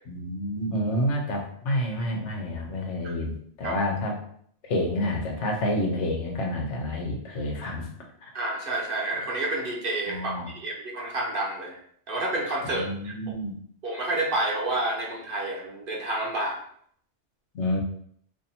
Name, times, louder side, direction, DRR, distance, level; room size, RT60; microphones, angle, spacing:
voice 1, 0.1-4.2 4.7-7.9 8.2-8.3 10.1-10.5 12.7-13.6 17.5-17.8, left 1 dB, 90° left, 1 dB, 1.1 m, -29 dB
voice 2, 8.3-11.8 12.1-13.3 13.8-16.6, right 2 dB, 55° right, -2 dB, 1.0 m, -29 dB
2.7 x 2.7 x 4.1 m, 0.64 s
omnidirectional pair, 1.2 m